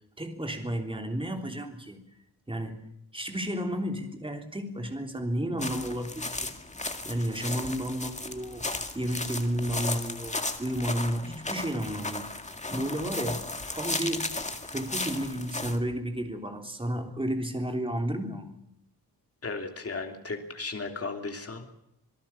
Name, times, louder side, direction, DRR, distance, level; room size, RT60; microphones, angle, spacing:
voice 1, 0.2-2.0 2.5-2.8 3.1-6.5 7.0-8.7 8.9-12.3 12.7-13.4 13.7-14.3 14.6-18.5, equal, 15° right, 4 dB, 3.4 m, -32 dB
sound 1, 5.6-15.8, left 2 dB, 20° left, 2.1 m, -35 dB
voice 2, 19.4-21.7, left 3 dB, 40° left, 4 dB, 3.1 m, -35 dB
27.0 x 18.5 x 7.3 m, 0.80 s
wide cardioid pair, 145°, 38 cm